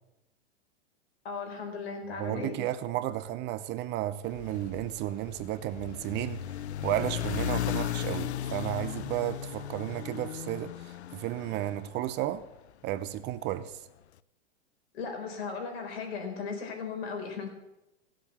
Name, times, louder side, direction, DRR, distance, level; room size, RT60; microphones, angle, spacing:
voice 1, 1.2-2.6 14.9-17.5, left 5 dB, 65° left, 4.3 m, -36 dB
voice 2, 2.2-6.4 6.8-12.4 12.8-13.9, right 13 dB, 35° right, 0.7 m, -33 dB
sound 1, 4.2-12.6, left 12 dB, 85° left, 0.6 m, -36 dB
16.5 x 7.6 x 7.2 m
hypercardioid pair, 115°, 33 cm